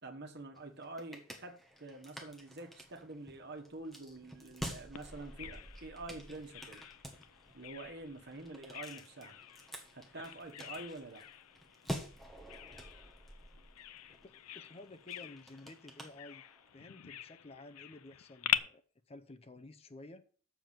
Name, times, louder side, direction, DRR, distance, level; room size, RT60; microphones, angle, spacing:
voice 1, 0.0-6.8 7.5-9.4 9.9-11.2, right 2 dB, 50° right, 1.6 m, -47 dB
sound 1, 0.5-16.8, equal, ahead, 1.3 m, -49 dB
Bird vocalization bird call bird song, 5.0-18.6, left 12 dB, 85° left, 0.5 m, -44 dB
voice 2, 14.2-16.4 16.7-18.8 19.1-20.3, left 2 dB, 30° left, 0.6 m, -53 dB
7.1 x 6.0 x 7.6 m
head